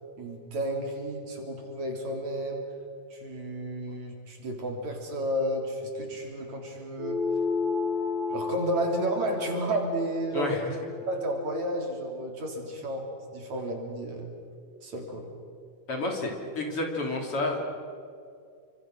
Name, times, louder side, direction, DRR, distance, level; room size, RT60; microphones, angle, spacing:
voice 1, 0.2-2.6 3.1-7.2 8.3-10.5 11.1-13.0 13.3-14.3 14.8-15.2, right 1 dB, 60° right, 2 dB, 4.7 m, -32 dB
sound 1, 7.0-11.8, left 4 dB, ahead, 3.0 m, -32 dB
voice 2, 15.9-17.6, left 2 dB, 45° left, 1 dB, 3.9 m, -30 dB
29.5 x 25.5 x 6.2 m, 2.3 s
omnidirectional pair, 3.8 m